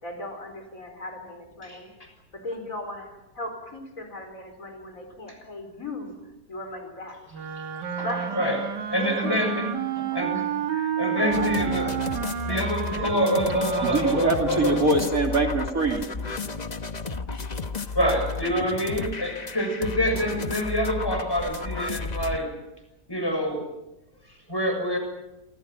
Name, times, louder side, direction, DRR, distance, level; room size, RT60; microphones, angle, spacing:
voice 1, 0.0-1.9 2.3-6.1 6.5-7.2 8.0-8.5 9.0-9.4 9.9-10.1, left 1 dB, 50° left, 5 dB, 4.9 m, -37 dB
Wind instrument woodwind instrument, 7.3-15.2, right 9 dB, 85° right, 2.0 m, -31 dB
voice 2, 8.9-9.7 10.0-10.4 10.8-11.9 12.5-14.8 17.9-22.5 23.1-23.6 24.5-25.0, equal, 15° left, 4 dB, 6.8 m, -26 dB
voice 3, 11.2-13.1 24.1-24.6, equal, 20° right, 4 dB, 6.8 m, -41 dB
sound 1, 11.3-22.4, left 4 dB, 30° left, 1.0 m, -33 dB
voice 4, 13.8-16.1, right 2 dB, 55° right, 2 dB, 3.2 m, -23 dB
28.0 x 25.0 x 6.0 m, 0.94 s
omnidirectional pair, 1.8 m